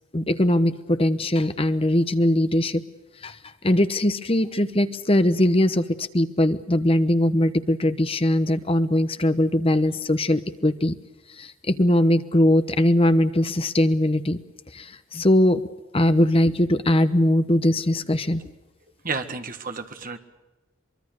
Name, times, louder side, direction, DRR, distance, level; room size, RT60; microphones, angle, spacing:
voice 1, 0.1-2.8 3.2-3.4 3.6-5.8 6.1-10.9 11.4-14.4 14.7-15.6 15.9-18.4, left 1 dB, 25° left, 11 dB, 1.0 m, -21 dB
voice 2, 19.0-20.2, right 4 dB, 40° right, 8 dB, 1.6 m, -31 dB
24.0 x 23.5 x 6.6 m, 1.1 s
head